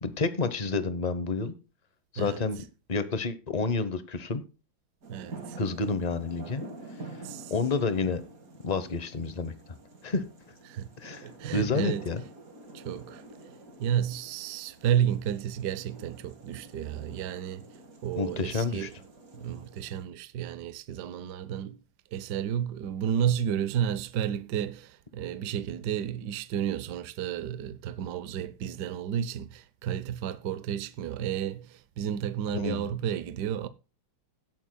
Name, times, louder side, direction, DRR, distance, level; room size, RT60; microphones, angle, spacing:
voice 1, 0.0-1.5 2.1-4.4 5.6-6.6 7.5-8.2 8.6-9.5 10.0-10.2 11.0-12.2 18.2-18.9 32.5-32.9, left 4 dB, 50° left, 0.4 m, -29 dB
sound 1, 5.0-20.0, right 2 dB, 45° right, 2.2 m, -48 dB
voice 2, 5.1-5.6 7.2-7.5 10.7-10.9 11.2-12.1 12.7-13.2 13.8-17.7 18.0-18.9 19.3-21.8 22.1-33.7, right 9 dB, 65° right, 1.1 m, -31 dB
17.0 x 9.3 x 2.2 m
omnidirectional pair, 2.3 m